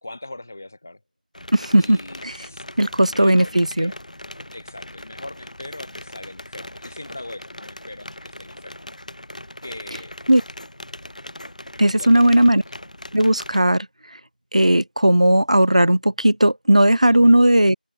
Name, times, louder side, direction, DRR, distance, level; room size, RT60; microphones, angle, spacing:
voice 1, 0.0-1.0 1.8-2.6 3.0-4.0 4.5-8.8 9.6-10.1 11.9-12.6 17.1-17.4, left 2 dB, 15° left, 1.7 m, -40 dB
sound 1, 1.3-13.6, left 1 dB, 50° left, 2.8 m, -40 dB
voice 2, 1.5-2.3 2.8-3.9 10.3-10.4 11.8-12.6 13.1-13.9 14.5-17.7, right 1 dB, 45° right, 0.6 m, -16 dB
open air
figure-of-eight pair, 180°, 5 cm